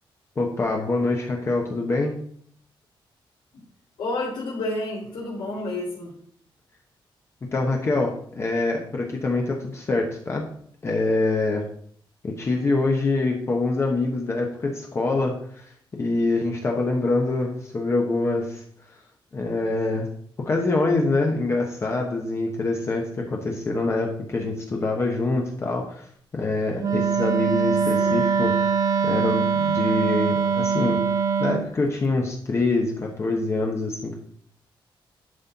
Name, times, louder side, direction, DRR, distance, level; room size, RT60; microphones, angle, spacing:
voice 1, 0.4-2.1 7.5-10.5 10.8-11.6 12.2-15.7 16.0-18.6 19.3-20.1 20.4-26.1 26.3-28.7 29.0-31.0 31.4-34.2, left 2 dB, 30° left, 0 dB, 1.0 m, -25 dB
voice 2, 4.0-6.1 28.0-28.2, left 2 dB, 90° left, -7 dB, 2.5 m, -30 dB
Wind instrument woodwind instrument, 26.8-31.7, right 6 dB, 40° right, 0.5 m, -22 dB
11.0 x 4.3 x 4.1 m, 0.62 s
wide cardioid pair, 175°, 9 cm